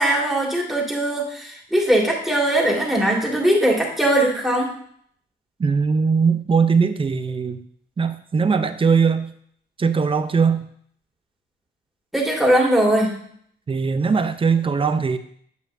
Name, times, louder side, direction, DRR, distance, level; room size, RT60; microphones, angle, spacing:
voice 1, 0.0-4.7 12.1-13.2, right 1 dB, ahead, -3 dB, 2.3 m, -20 dB
voice 2, 5.6-7.6 8.0-9.3 9.8-10.7 13.7-15.2, right 5 dB, 25° right, 10 dB, 0.6 m, -20 dB
8.1 x 6.9 x 2.7 m, 0.64 s
cardioid pair, 90°, 20 cm